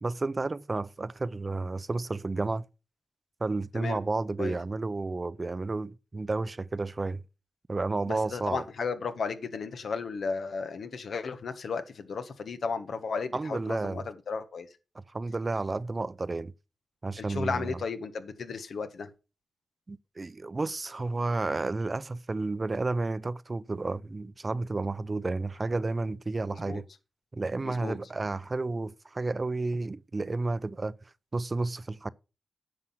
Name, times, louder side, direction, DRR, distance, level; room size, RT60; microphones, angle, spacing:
voice 1, 0.0-2.6 3.4-7.2 7.7-8.6 13.3-14.1 15.1-16.5 17.0-17.8 19.9-26.8 27.3-30.9 31.3-32.1, right 3 dB, 35° right, 0.5 m, -31 dB
voice 2, 8.1-14.7 17.2-19.1 26.5-26.8 27.6-28.0, left 5 dB, 75° left, 1.3 m, -34 dB
9.9 x 6.1 x 5.7 m
cardioid pair, 70°, 0 cm